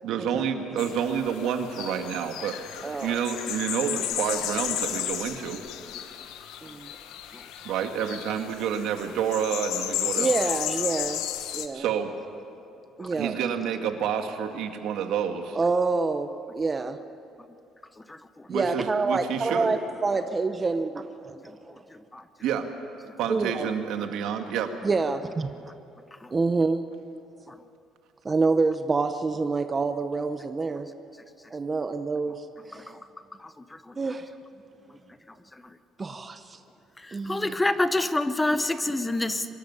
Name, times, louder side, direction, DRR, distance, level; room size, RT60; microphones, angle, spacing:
voice 1, 0.0-2.6 3.0-5.6 7.6-10.3 11.7-12.1 13.1-15.6 18.5-19.7 22.4-22.7 23.2-24.7, right 8 dB, 75° right, 6 dB, 1.8 m, -29 dB
sound 1, 0.8-11.7, left 11 dB, 90° left, 1.2 m, -33 dB
voice 2, 2.8-3.2 6.6-6.9 10.2-11.2 11.5-11.9 13.0-13.4 15.5-17.0 18.5-21.5 23.3-23.7 24.8-25.5 26.3-26.8 28.2-30.9 31.5-32.9 34.0-34.3 36.0-36.6 37.1-37.5 39.2-39.4, right 3 dB, 20° right, 9 dB, 0.7 m, -27 dB
voice 3, 18.1-18.5 22.1-22.2 26.2-26.3 27.5-27.6 32.7-33.0 33.4-33.9 35.5-35.6 37.0-39.5, left 2 dB, 10° left, 11 dB, 0.7 m, -28 dB
24.0 x 13.0 x 9.7 m, 2.6 s
cardioid pair, 140°, 0 cm